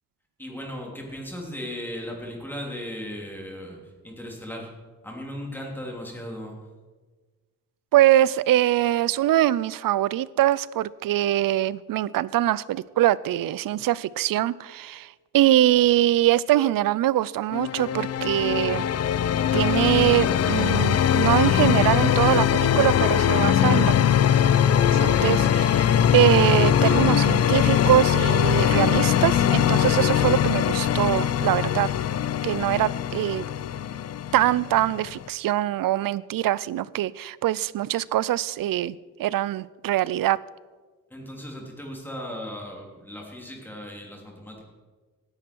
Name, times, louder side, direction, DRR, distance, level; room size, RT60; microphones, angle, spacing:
voice 1, 0.4-4.7 5.0-6.6 41.1-44.6, equal, 5° left, -1 dB, 3.2 m, -37 dB
voice 2, 7.9-18.8 19.5-24.0 24.9-31.9 32.4-33.5 34.3-40.4, right 13 dB, 75° right, 21 dB, 0.5 m, -23 dB
sound 1, 17.5-35.3, left 9 dB, 45° left, 0.5 m, -21 dB
17.5 x 10.5 x 4.6 m, 1.4 s
wide cardioid pair, 130°, 34 cm